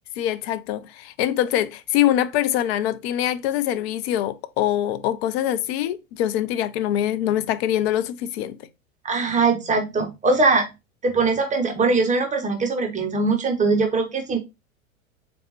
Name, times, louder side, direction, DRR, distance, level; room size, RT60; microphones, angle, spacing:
voice 1, 0.2-8.6, left 12 dB, 50° left, 0.5 m, -24 dB
voice 2, 9.0-10.6 11.0-14.4, right 3 dB, 15° right, 0.9 m, -21 dB
3.8 x 3.5 x 2.9 m
hypercardioid pair, 95°, 42 cm